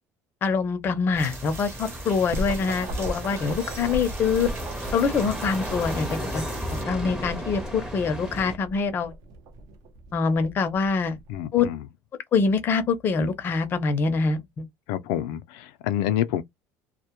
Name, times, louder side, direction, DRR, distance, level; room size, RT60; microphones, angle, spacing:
voice 1, 0.4-4.5 4.9-6.4 6.7-9.1 10.1-11.2 11.5-11.7 12.3-14.7, left 5 dB, 30° left, 0.5 m, -24 dB
sound 1, 1.1-8.6, equal, 10° right, 0.6 m, -34 dB
sound 2, 1.2-6.8, right 4 dB, 35° right, 0.9 m, -43 dB
sound 3, 2.3-11.4, right 1 dB, 60° right, 0.6 m, -38 dB
voice 2, 11.3-11.9 14.9-16.4, left 11 dB, 90° left, 0.4 m, -28 dB
2.1 x 2.1 x 2.9 m
cardioid pair, 160°, 7 cm